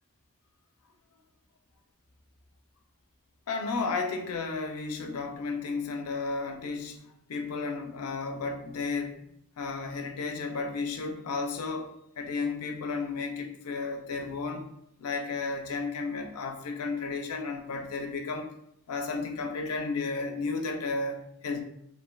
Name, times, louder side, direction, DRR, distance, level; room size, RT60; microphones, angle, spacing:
voice 1, 3.5-7.0 7.3-9.2 9.6-14.7 15.0-18.5 18.9-21.6, left 4 dB, 85° left, 0.4 m, -33 dB
3.1 x 2.7 x 2.2 m
head